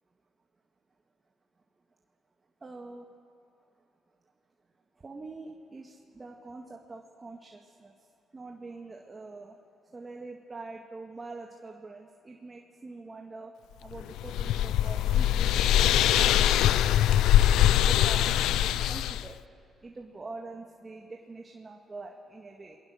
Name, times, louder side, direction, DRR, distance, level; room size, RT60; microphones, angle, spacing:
voice 1, 2.6-3.1 5.0-7.9 8.3-9.6 9.9-13.5 13.8-17.1 17.8-19.4 19.8-22.8, right 3 dB, 25° right, 1 dB, 2.0 m, -44 dB
sound 1, 13.9-19.3, left 12 dB, 85° left, 0.5 m, -23 dB
28.5 x 21.0 x 6.6 m, 2.7 s
cardioid pair, 90°, 0 cm